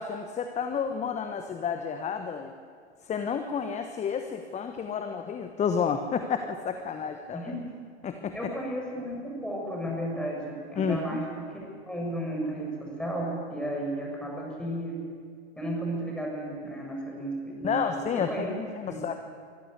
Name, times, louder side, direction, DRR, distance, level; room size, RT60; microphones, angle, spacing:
voice 1, 0.0-2.5 3.0-7.5 8.0-8.5 10.8-11.2 17.6-19.2, left 6 dB, 20° left, 7 dB, 1.2 m, -31 dB
voice 2, 7.3-7.8 8.3-15.0 15.6-18.5 18.8-19.0, right 1 dB, 5° left, -2 dB, 7.3 m, -34 dB
24.5 x 14.5 x 8.2 m, 2.1 s
figure-of-eight pair, 100°, 34 cm